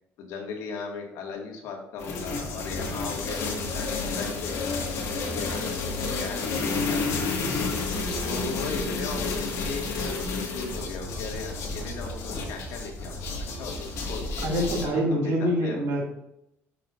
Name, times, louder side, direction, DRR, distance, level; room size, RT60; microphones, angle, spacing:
voice 1, 0.2-4.5 5.1-7.6 8.2-13.2 13.5-14.5 14.8-15.9, left 5 dB, 85° left, 1 dB, 2.0 m, -38 dB
sound 1, 2.0-14.8, left 3 dB, 65° left, 1.8 m, -30 dB
voice 2, 14.4-16.0, equal, 60° right, -1 dB, 2.4 m, -25 dB
11.0 x 7.0 x 2.6 m, 0.80 s
cardioid pair, 150°, 5 cm